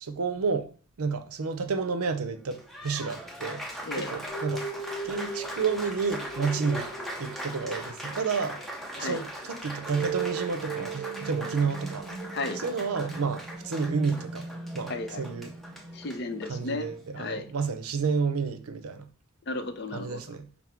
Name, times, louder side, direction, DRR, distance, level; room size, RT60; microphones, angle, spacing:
voice 1, 0.0-3.7 3.9-4.7 5.0-6.9 7.2-8.6 9.0-12.1 12.6-14.5 14.7-15.5 16.5-19.1 19.9-20.5, right 5 dB, 90° right, 0.6 m, -30 dB
Applause, 2.3-17.1, equal, ahead, 0.5 m, -40 dB
sound 1, 4.3-17.4, right 4 dB, 40° right, 0.7 m, -39 dB
voice 2, 14.9-15.3 15.9-16.9 17.2-17.5 19.5-20.2, left 2 dB, 50° left, 0.5 m, -34 dB
5.8 x 2.0 x 4.4 m
head